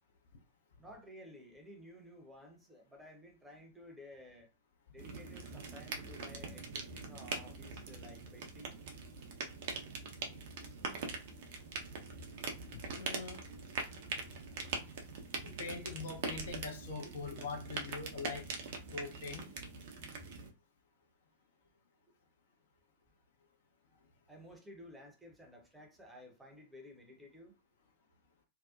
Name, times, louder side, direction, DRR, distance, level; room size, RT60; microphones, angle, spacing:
voice 1, 0.8-4.5 4.9-8.8 17.0-17.1 24.3-27.5, left 1 dB, 10° right, 0.7 m, -54 dB
sound 1, 5.0-20.5, right 4 dB, 55° right, 0.6 m, -43 dB
voice 2, 12.7-13.4 15.4-18.5 18.9-19.5, left 4 dB, 60° left, 0.7 m, -43 dB
2.7 x 2.1 x 2.4 m
figure-of-eight pair, 90°, 0 cm